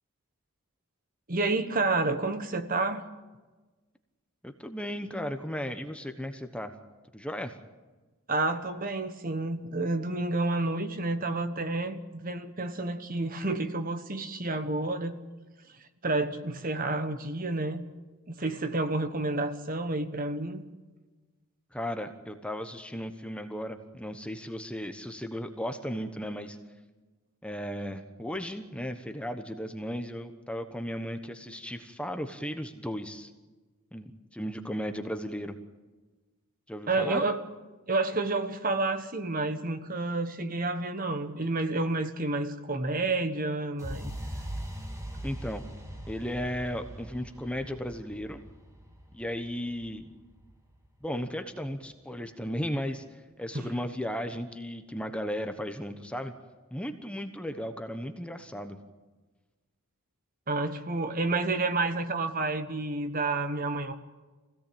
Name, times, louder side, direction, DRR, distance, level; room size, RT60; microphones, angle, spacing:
voice 1, 1.3-3.1 8.3-15.2 16.0-17.8 18.3-20.6 36.9-37.4 37.9-44.2 53.5-53.7 60.5-63.9, right 2 dB, 40° right, 1.3 m, -30 dB
voice 2, 4.4-6.7 7.1-7.5 21.7-26.6 27.4-33.3 33.9-35.6 36.7-37.2 45.2-45.6 46.1-48.4 49.1-50.0 51.0-56.3 56.7-58.8, equal, 5° left, 1.1 m, -35 dB
sound 1, 43.8-51.7, equal, 15° right, 2.0 m, -42 dB
25.0 x 17.0 x 8.7 m
head